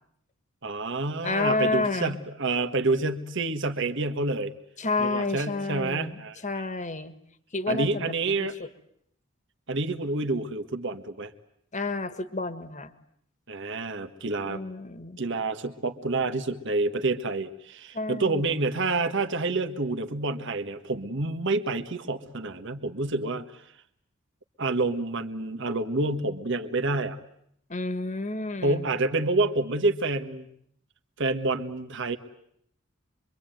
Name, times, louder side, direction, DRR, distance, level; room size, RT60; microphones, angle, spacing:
voice 1, 0.6-4.5 5.0-6.6 7.7-8.5 9.7-11.3 13.5-14.6 15.2-23.6 24.6-27.2 28.6-30.5 31.2-32.2, right 3 dB, 60° right, 6 dB, 1.6 m, -28 dB
voice 2, 1.2-2.2 4.8-7.1 7.5-8.5 11.7-12.9 14.5-15.2 17.9-18.5 27.7-28.8, left 3 dB, 35° left, 12 dB, 1.7 m, -30 dB
25.5 x 24.5 x 9.2 m, 0.70 s
head